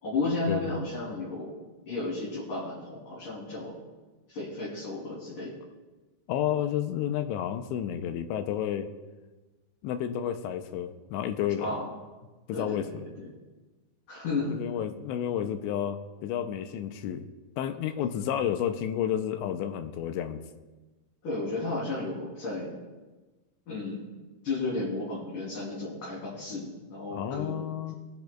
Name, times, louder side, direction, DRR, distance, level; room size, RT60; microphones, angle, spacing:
voice 1, 0.0-1.5 1.9-3.7 4.3-5.5 11.6-11.9 12.5-13.3 14.1-14.6 21.2-22.7 23.7-24.1 24.4-27.7, left 3 dB, 45° left, -7 dB, 4.3 m, -33 dB
voice 2, 6.3-8.9 9.8-11.8 12.5-13.1 14.5-17.3 17.6-20.4 27.1-28.0, left 10 dB, 85° left, 8 dB, 2.8 m, -31 dB
22.5 x 10.5 x 2.3 m, 1.2 s
omnidirectional pair, 5.4 m